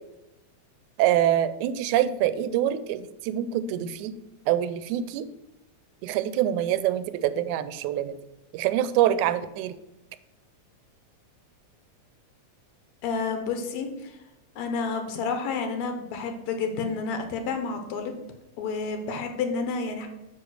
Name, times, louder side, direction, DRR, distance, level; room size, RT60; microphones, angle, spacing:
voice 1, 1.0-4.2 4.5-5.3 6.0-8.2 8.5-9.8, right 11 dB, 85° right, 13 dB, 2.0 m, -25 dB
voice 2, 13.0-14.2 14.6-18.1 18.6-20.1, left 4 dB, 75° left, 6 dB, 2.1 m, -30 dB
9.7 x 3.4 x 6.3 m, 0.95 s
omnidirectional pair, 3.4 m